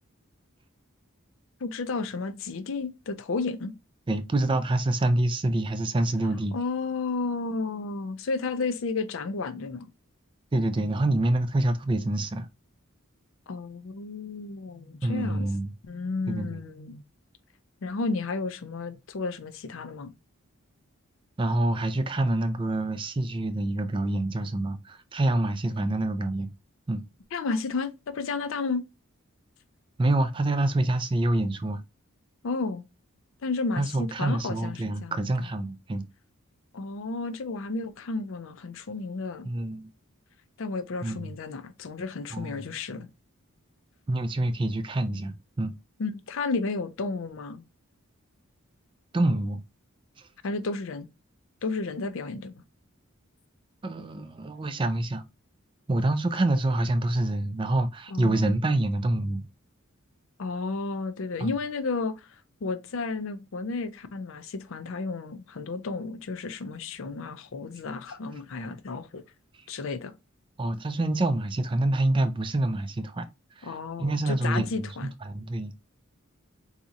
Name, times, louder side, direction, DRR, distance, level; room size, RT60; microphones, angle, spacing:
voice 1, 1.6-3.7 6.5-9.9 13.5-15.5 15.9-17.0 17.8-20.1 27.3-28.8 32.4-32.8 33.4-35.5 36.7-39.5 40.6-43.1 46.0-47.6 50.4-51.1 51.6-52.5 58.1-58.5 60.4-62.3 62.6-69.2 69.7-70.1 73.6-75.1, left 3 dB, 60° left, 0.5 m, -32 dB
voice 2, 4.1-6.6 10.5-12.5 15.0-15.7 16.3-16.6 21.4-26.5 26.9-27.0 30.0-31.8 33.8-36.1 39.4-39.9 41.0-41.3 42.3-42.7 44.1-45.7 49.1-49.6 53.8-55.2 55.9-59.5 61.4-61.5 70.6-73.3 73.6-74.9 75.2-75.7, right 1 dB, 25° right, 0.4 m, -26 dB
4.0 x 2.8 x 2.4 m
head